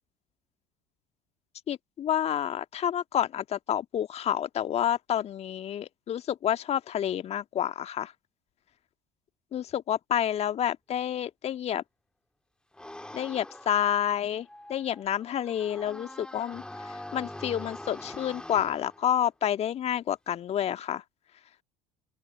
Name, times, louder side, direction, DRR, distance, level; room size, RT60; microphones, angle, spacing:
voice 1, 1.7-8.1 9.5-11.8 13.1-21.0, left 10 dB, 40° left, 1.8 m, -29 dB
sound 1, 12.7-19.1, left 1 dB, 5° left, 2.6 m, -44 dB
open air
figure-of-eight pair, 65°, 17 cm